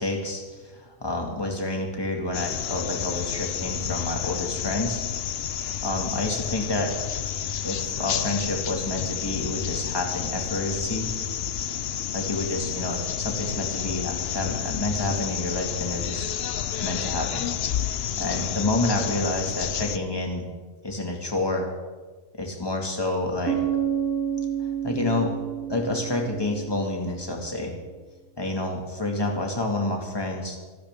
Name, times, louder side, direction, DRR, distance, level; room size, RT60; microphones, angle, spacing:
voice 1, 0.0-5.0 5.8-6.9 7.6-11.1 12.1-16.3 16.8-17.5 18.2-20.5 20.8-21.7 22.4-23.6 24.8-25.3 25.7-27.7 28.4-30.6, left 2 dB, 15° left, 1 dB, 2.2 m, -28 dB
sound 1, 2.3-20.0, left 9 dB, 55° left, 0.7 m, -30 dB
Bass guitar, 23.5-27.3, right 9 dB, 40° right, 1.4 m, -29 dB
25.5 x 12.0 x 3.7 m, 1.3 s
omnidirectional pair, 1.5 m